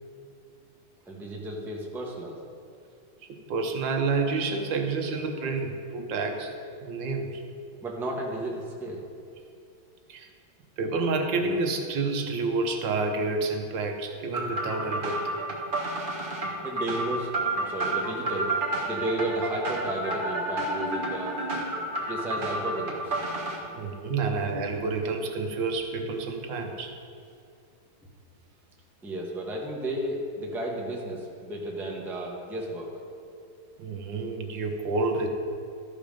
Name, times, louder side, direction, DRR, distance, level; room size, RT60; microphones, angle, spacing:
voice 1, 1.1-2.4 7.8-9.1 16.6-18.5 18.8-21.4 22.1-23.2 29.0-32.9, right 1 dB, ahead, -2 dB, 0.8 m, -33 dB
voice 2, 3.5-6.5 6.8-7.4 10.1-10.3 10.8-15.2 23.7-26.9 33.8-35.3, right 3 dB, 75° right, 4 dB, 1.5 m, -29 dB
sound 1, 14.3-23.6, right 2 dB, 30° right, 1.2 m, -30 dB
13.0 x 5.4 x 5.2 m, 2.5 s
omnidirectional pair, 2.1 m